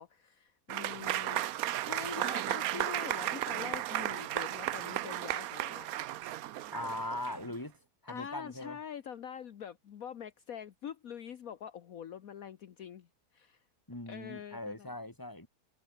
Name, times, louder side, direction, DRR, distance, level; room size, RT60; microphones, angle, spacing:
voice 1, 0.0-5.9 8.1-13.6 14.1-14.9, left 8 dB, 65° left, 1.4 m, -45 dB
Applause / Crowd, 0.7-7.5, right 14 dB, 70° right, 1.0 m, -34 dB
voice 2, 6.7-7.7 8.0-8.8 13.9-15.5, left 1 dB, 10° left, 3.2 m, -40 dB
omnidirectional pair, 1.7 m